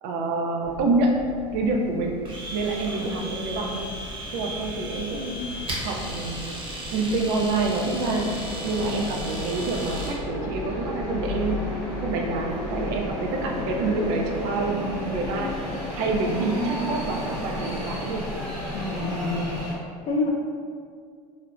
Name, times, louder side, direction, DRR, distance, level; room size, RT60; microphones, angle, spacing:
voice 1, 0.0-1.2 1.5-2.2 2.5-3.9 4.3-5.6 5.8-6.5 6.9-8.4 8.6-11.7 12.0-15.6 15.9-18.3, right 2 dB, 65° right, 1 dB, 0.4 m, -27 dB
sound 1, 0.6-19.7, left 1 dB, 5° left, 1.0 m, -34 dB
Domestic sounds home sounds, 2.3-10.2, right 1 dB, 25° right, 0.8 m, -36 dB
voice 2, 18.7-19.5 20.1-20.3, left 3 dB, 40° left, -4 dB, 0.4 m, -28 dB
3.1 x 2.0 x 2.4 m, 2.1 s
supercardioid pair, 90°, 19 cm